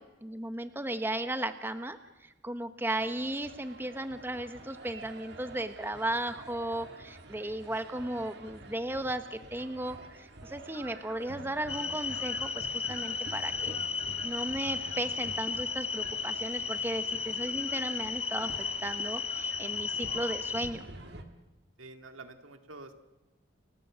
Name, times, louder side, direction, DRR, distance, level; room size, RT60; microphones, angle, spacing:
voice 1, 0.0-2.0 2.4-13.8 14.2-20.9, right 1 dB, 10° right, 9 dB, 0.9 m, -35 dB
sound 1, 3.0-21.2, right 2 dB, 55° right, 2.0 m, -48 dB
sound 2, 11.7-20.7, left 6 dB, 30° left, 1.2 m, -34 dB
voice 2, 21.8-23.0, right 3 dB, 85° right, 7 dB, 2.1 m, -48 dB
29.5 x 14.0 x 7.3 m, 1.1 s
head